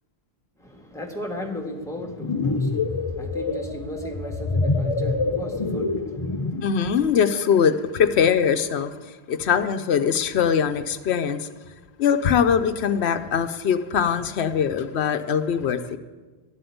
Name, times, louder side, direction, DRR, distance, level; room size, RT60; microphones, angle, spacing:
voice 1, 0.6-6.6, equal, 5° left, 0 dB, 1.6 m, -36 dB
sound 1, 2.0-6.8, left 3 dB, 35° left, 0.5 m, -26 dB
voice 2, 6.6-11.5 12.0-16.0, left 7 dB, 85° left, 9 dB, 1.0 m, -22 dB
12.0 x 7.8 x 9.4 m, 1.3 s
omnidirectional pair, 1.1 m